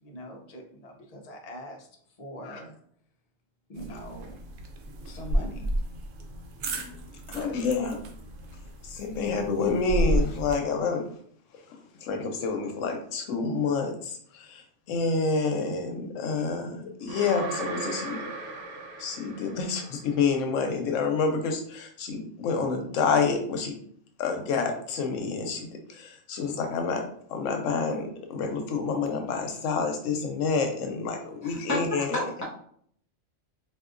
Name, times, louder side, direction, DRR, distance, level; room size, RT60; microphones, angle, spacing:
voice 1, 0.0-1.9 2.2-2.8 3.7-4.4 5.0-5.8 7.3-7.6, equal, 50° left, 2 dB, 0.5 m, -42 dB
sound 1, 3.8-10.5, right 1 dB, 90° right, 1.0 m, -32 dB
voice 2, 7.3-8.0 8.8-11.1 12.0-14.6 14.9-18.2 19.0-23.8 24.2-32.3, left 4 dB, 90° left, 5 dB, 1.0 m, -28 dB
sound 2, 17.1-20.2, right 3 dB, 65° right, 0.8 m, -37 dB
voice 3, 31.4-32.4, left 1 dB, 25° right, -5 dB, 0.4 m, -31 dB
3.6 x 2.5 x 2.4 m, 0.63 s
omnidirectional pair, 1.3 m